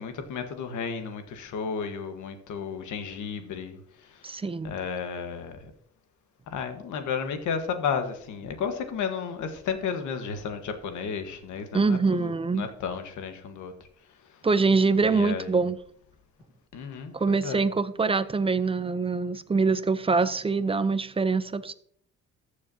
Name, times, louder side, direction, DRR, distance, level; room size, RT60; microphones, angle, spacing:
voice 1, 0.0-4.4 4.6-5.7 6.5-13.7 14.3-14.4 15.0-15.6 16.7-17.6, left 6 dB, 75° left, 1.4 m, -33 dB
voice 2, 4.2-4.7 11.7-12.7 14.4-15.8 17.1-21.7, right 4 dB, 20° right, 0.5 m, -24 dB
14.0 x 6.6 x 2.8 m
cardioid pair, 90°, 30 cm